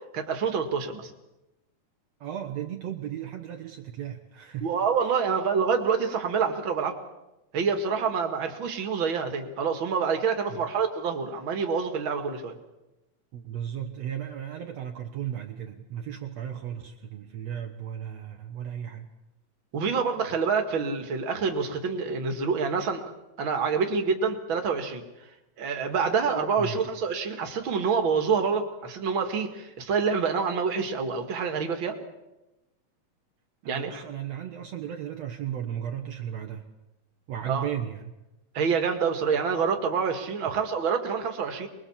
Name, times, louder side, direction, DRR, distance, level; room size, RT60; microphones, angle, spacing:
voice 1, 0.1-1.1 4.6-6.9 7.5-12.5 19.7-23.1 23.4-25.0 25.6-32.0 33.7-34.0 37.5-37.7 38.5-41.7, right 5 dB, 45° right, 5 dB, 2.6 m, -27 dB
voice 2, 2.2-4.7 5.0-5.2 13.3-19.1 26.6-26.8 33.6-36.7 37.3-38.1, right 10 dB, 65° right, 4 dB, 2.4 m, -35 dB
24.5 x 22.0 x 7.3 m, 0.98 s
omnidirectional pair, 3.4 m